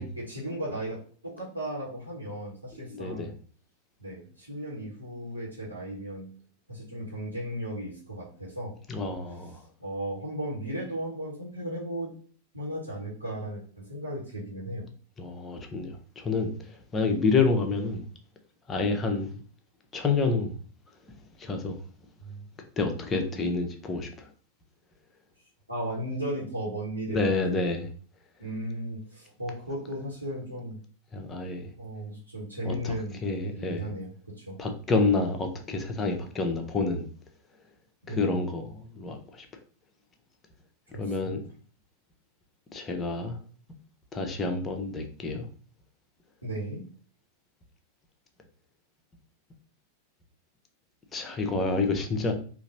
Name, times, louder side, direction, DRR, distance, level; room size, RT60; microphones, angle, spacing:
voice 1, 0.0-3.3 4.0-6.3 6.7-8.8 9.8-12.1 12.5-14.9 22.2-22.4 25.7-27.2 28.4-30.8 31.8-34.6 38.1-38.3 40.9-41.3 46.4-46.8, right 1 dB, 85° right, 1.3 m, -36 dB
voice 2, 2.7-3.3 8.9-9.6 15.2-18.0 18.7-19.4 19.9-20.5 21.4-21.8 22.8-24.3 27.1-27.9 31.1-31.7 32.6-33.9 34.6-37.1 38.1-39.5 41.0-41.4 42.7-43.4 44.1-45.4 51.1-52.3, left 3 dB, 20° left, 0.7 m, -28 dB
4.0 x 2.6 x 2.6 m
figure-of-eight pair, 90°, 0 cm